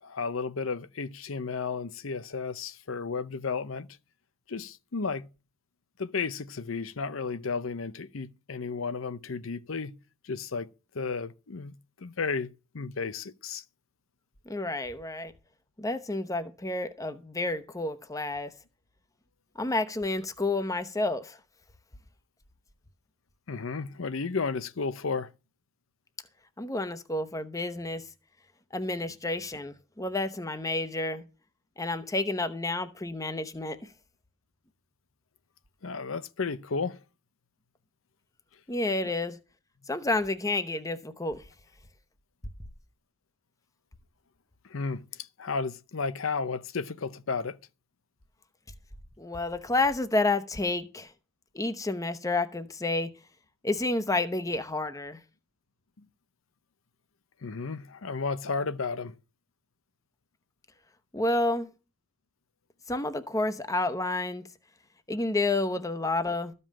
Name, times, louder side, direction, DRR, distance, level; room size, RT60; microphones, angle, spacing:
voice 1, 0.0-3.9 4.5-5.3 6.0-10.0 10.2-10.7 10.9-12.5 12.7-13.6 23.5-25.3 35.8-37.0 39.0-39.1 44.6-47.6 56.0-56.1 57.4-59.1, left 4 dB, 80° left, 0.7 m, -33 dB
voice 2, 14.5-15.3 15.8-18.5 19.6-21.4 26.6-28.1 28.7-31.2 31.8-33.8 38.7-39.4 39.9-41.4 49.2-51.1 51.5-53.1 53.6-55.2 61.1-61.7 62.9-64.4 65.1-66.5, left 2 dB, 15° left, 0.9 m, -30 dB
14.0 x 5.5 x 7.5 m
head